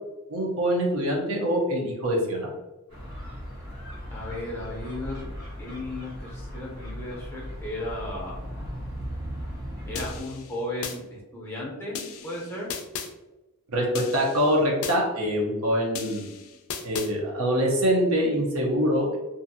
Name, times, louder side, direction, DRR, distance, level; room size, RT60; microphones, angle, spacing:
voice 1, 0.3-2.5 13.7-16.3 16.8-19.2, equal, 65° right, -2 dB, 0.8 m, -24 dB
sound 1, 2.9-10.2, equal, 90° right, 1.2 m, -37 dB
voice 2, 4.1-5.3 5.6-8.4 9.8-12.7, left 1 dB, 10° left, -4 dB, 0.7 m, -35 dB
sound 2, 10.0-11.0 11.9-13.1 13.9-15.0 15.9-17.1, left 7 dB, 70° left, 0.4 m, -36 dB
2.6 x 2.5 x 2.6 m, 1.1 s
head